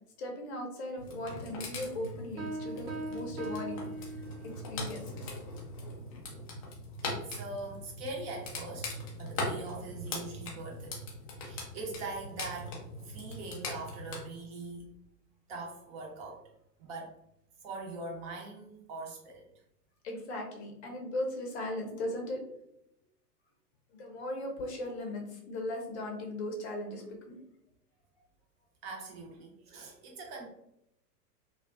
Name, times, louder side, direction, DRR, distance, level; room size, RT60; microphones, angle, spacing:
voice 1, 0.2-3.8 4.4-5.3 20.0-22.4 23.9-27.4, left 1 dB, 45° left, 1 dB, 0.7 m, -38 dB
sound 1, 1.0-14.2, left 2 dB, 25° left, 0.3 m, -41 dB
sound 2, 2.4-4.8, right 1 dB, 75° right, 0.9 m, -40 dB
voice 2, 7.0-11.0 11.4-12.8 13.0-14.9 15.5-16.5 16.8-17.2 17.6-19.5 28.8-30.5, right 3 dB, 40° right, -1 dB, 0.8 m, -42 dB
2.3 x 2.3 x 2.4 m, 0.79 s
figure-of-eight pair, 105°, 49 cm